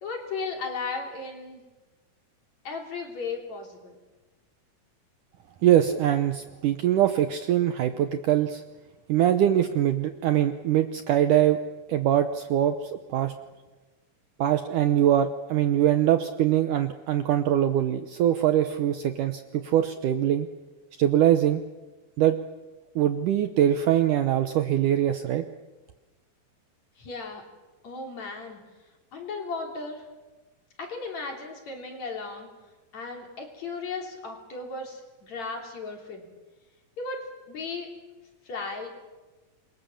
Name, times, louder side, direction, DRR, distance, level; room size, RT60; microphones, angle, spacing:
voice 1, 0.0-1.6 2.6-3.9 27.0-27.5 27.8-28.6 29.1-30.0 30.8-32.5 32.9-36.3 37.0-38.0 38.4-38.9, left 4 dB, 45° left, 2 dB, 4.4 m, -35 dB
voice 2, 5.6-8.6 9.1-11.6 11.9-13.3 14.4-20.5 21.0-21.6 22.2-22.4 23.0-25.4, right 11 dB, 70° right, 8 dB, 2.0 m, -23 dB
27.5 x 22.5 x 7.2 m, 1.2 s
omnidirectional pair, 4.5 m